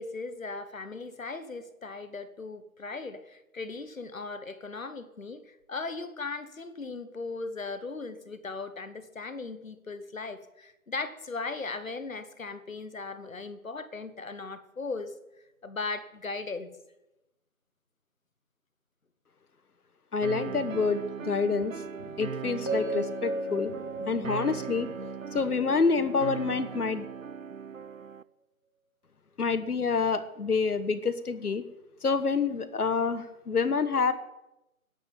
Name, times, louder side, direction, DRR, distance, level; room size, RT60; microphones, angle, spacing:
voice 1, 0.0-15.1 15.6-16.7, left 3 dB, 65° left, 11 dB, 1.4 m, -38 dB
voice 2, 20.1-24.9 25.3-27.0 29.4-31.6 32.0-34.1, left 5 dB, 90° left, 11 dB, 1.3 m, -28 dB
sound 1, 20.2-28.2, right 7 dB, 65° right, 0.7 m, -39 dB
sound 2, 22.7-26.8, right 1 dB, 20° left, 1.2 m, -36 dB
11.5 x 7.7 x 8.9 m, 0.95 s
figure-of-eight pair, 180°, 44 cm